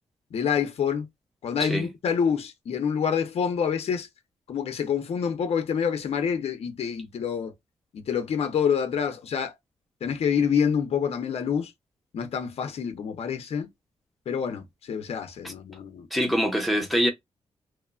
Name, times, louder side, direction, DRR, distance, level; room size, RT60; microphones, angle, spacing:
voice 1, 0.3-1.1 1.4-4.1 4.5-7.5 7.9-9.5 10.0-11.7 12.1-13.7 14.3-16.1, left 7 dB, 65° left, 0.5 m, -27 dB
voice 2, 16.1-17.1, equal, ahead, 0.6 m, -24 dB
3.0 x 2.1 x 2.3 m
wide cardioid pair, 150°, 11 cm